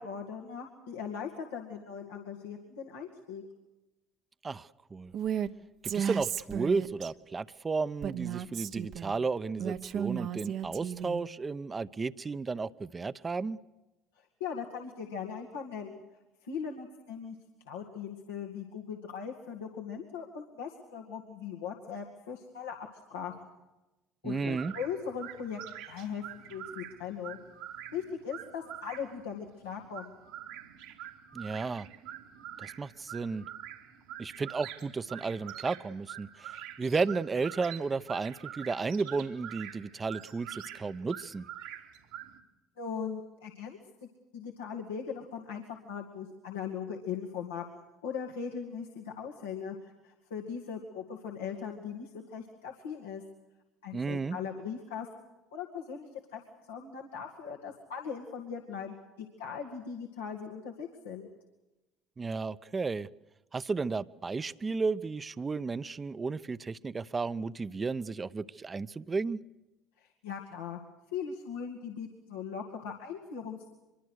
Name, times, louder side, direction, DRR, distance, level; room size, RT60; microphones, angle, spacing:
voice 1, 0.0-3.4 14.2-16.0 16.4-17.4 17.6-22.8 23.1-23.5 24.2-25.6 25.9-26.2 26.5-27.4 27.9-30.2 42.8-43.8 44.3-53.2 53.8-55.1 55.5-56.4 56.7-61.3 70.0-70.8 71.1-73.7, left 7 dB, 90° left, -1 dB, 2.4 m, -39 dB
voice 2, 4.4-5.1 5.9-13.6 24.2-24.7 31.3-31.9 32.6-33.5 34.2-41.5 53.9-54.4 62.2-63.1 63.5-69.4, right 4 dB, 30° right, 14 dB, 0.9 m, -33 dB
Female speech woman speaking, 5.1-5.5 5.8-7.1 8.0-9.1 9.6-11.2, right 8 dB, 60° right, 1.2 m, -34 dB
sound 1, 24.3-42.4, right 11 dB, 80° right, 2.8 m, -46 dB
24.5 x 23.0 x 6.6 m, 1.0 s
hypercardioid pair, 70°, 0 cm